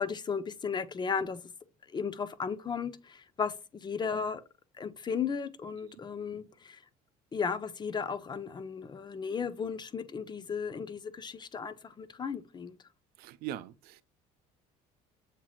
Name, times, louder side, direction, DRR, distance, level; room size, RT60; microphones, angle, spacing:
voice 1, 0.0-1.4 1.9-4.4 4.8-6.8 7.3-12.7, left 6 dB, 25° left, 0.5 m, -35 dB
voice 2, 13.2-14.0, right 12 dB, 70° right, 0.5 m, -41 dB
7.4 x 2.9 x 2.4 m
supercardioid pair, 90°, 16 cm